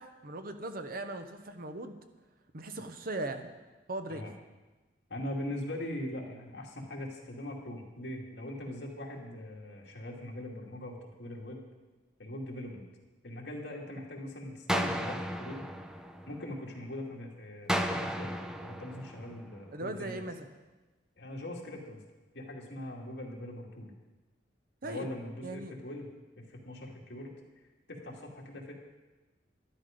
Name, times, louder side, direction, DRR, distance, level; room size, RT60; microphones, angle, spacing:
voice 1, 0.0-2.0 2.5-3.5 3.9-4.2 19.7-20.5 24.8-25.1 25.4-25.7, right 2 dB, 55° right, 8 dB, 1.0 m, -39 dB
voice 2, 5.1-11.6 12.2-12.8 13.2-15.7 16.3-18.3 18.6-20.2 21.2-22.0 22.3-23.9 24.8-26.1 26.4-27.3 27.9-28.7, left 1 dB, 65° left, -1 dB, 2.3 m, -41 dB
sound 1, 14.7-16.7 17.7-19.7, equal, 5° right, 0.7 m, -34 dB
12.0 x 11.5 x 5.1 m, 1.2 s
head